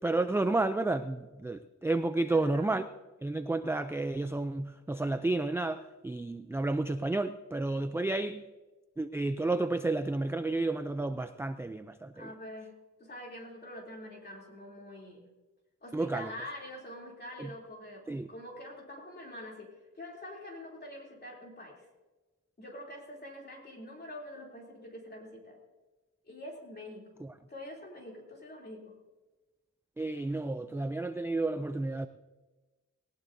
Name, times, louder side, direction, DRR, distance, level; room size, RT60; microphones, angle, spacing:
voice 1, 0.0-2.8 3.2-8.4 9.0-12.3 15.9-16.3 18.1-18.3 27.2-27.3 30.0-32.1, right 2 dB, 10° right, 9 dB, 0.3 m, -31 dB
voice 2, 2.2-2.8 12.1-12.7 13.0-15.2 15.8-21.9 22.6-25.6 26.2-27.1 27.5-29.0, left 1 dB, 35° left, -1 dB, 3.0 m, -45 dB
18.5 x 18.0 x 2.6 m, 1.2 s
wide cardioid pair, 165°, 30 cm